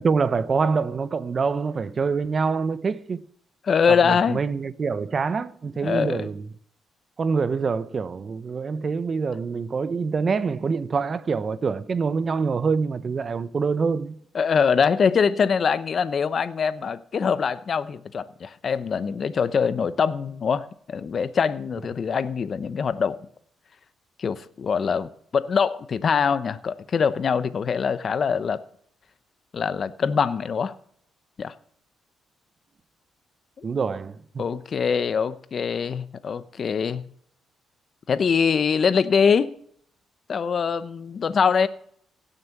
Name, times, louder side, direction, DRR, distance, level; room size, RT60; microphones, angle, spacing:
voice 1, 0.0-3.2 3.9-6.5 7.2-14.2 33.6-34.4, right 5 dB, 40° right, 0.7 m, -25 dB
voice 2, 3.6-4.4 5.8-6.3 14.3-23.2 24.2-28.6 29.5-30.7 31.4-31.5 33.6-33.7 34.4-37.0 38.1-39.5 40.3-41.7, left 6 dB, 50° left, 0.8 m, -23 dB
16.5 x 6.8 x 6.0 m
cardioid pair, 90°, 0 cm